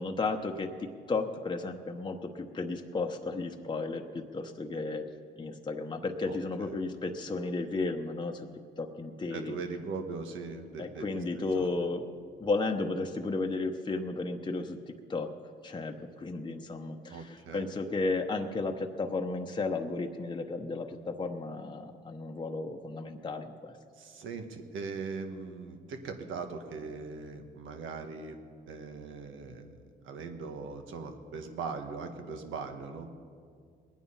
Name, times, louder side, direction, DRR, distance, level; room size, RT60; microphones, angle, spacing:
voice 1, 0.0-5.1 5.4-8.5 8.8-9.6 10.8-12.0 12.4-14.8 15.1-15.3 15.6-23.7, left 3 dB, 25° left, 2 dB, 0.9 m, -33 dB
voice 2, 6.2-6.7 9.3-11.2 11.6-11.8 17.1-17.6 23.9-28.4 28.7-29.7 30.0-33.1, right 4 dB, 80° right, 6 dB, 1.5 m, -40 dB
21.0 x 9.3 x 5.6 m, 2.2 s
cardioid pair, 90°, 20 cm